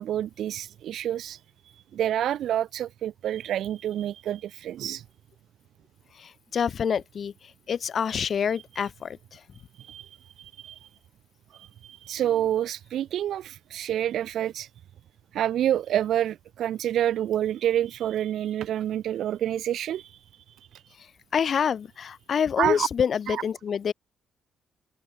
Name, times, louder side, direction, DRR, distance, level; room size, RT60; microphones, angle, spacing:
voice 1, 0.0-1.4 1.9-5.0 9.8-10.9 11.5-14.7 15.3-20.2 20.7-20.8 22.6-22.9 23.3-23.4, right 11 dB, 75° right, 1.5 m, -28 dB
voice 2, 6.1-9.4 21.0-23.9, left 7 dB, 50° left, 1.9 m, -27 dB
cardioid pair, 90°, 0 cm